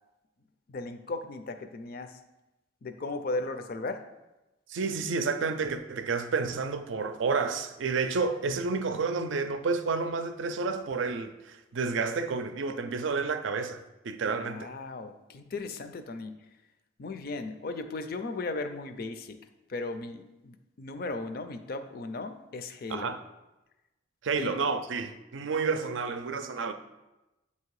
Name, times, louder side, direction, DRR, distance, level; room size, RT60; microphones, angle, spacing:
voice 1, 0.7-2.2 2.8-4.0 14.2-16.3 17.0-19.4 19.7-23.1 24.4-24.6, left 3 dB, 50° left, 0.4 m, -36 dB
voice 2, 4.7-14.7 22.9-23.2 24.2-26.7, right 4 dB, 80° right, 0.5 m, -30 dB
7.9 x 2.8 x 4.7 m
head